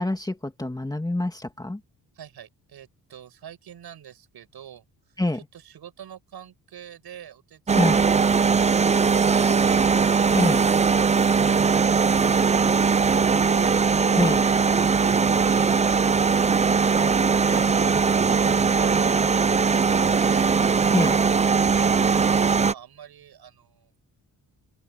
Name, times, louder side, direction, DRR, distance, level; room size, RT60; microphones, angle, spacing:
voice 1, 0.0-1.8 5.2-5.4 7.7-8.0 10.3-10.6 14.1-14.4 20.9-21.2, left 2 dB, 10° left, 2.3 m, -25 dB
voice 2, 2.1-9.9 21.7-23.9, right 9 dB, 70° right, 7.1 m, -45 dB
sound 1, 7.7-22.7, right 5 dB, 20° right, 0.4 m, -20 dB
open air
wide cardioid pair, 140°, 40 cm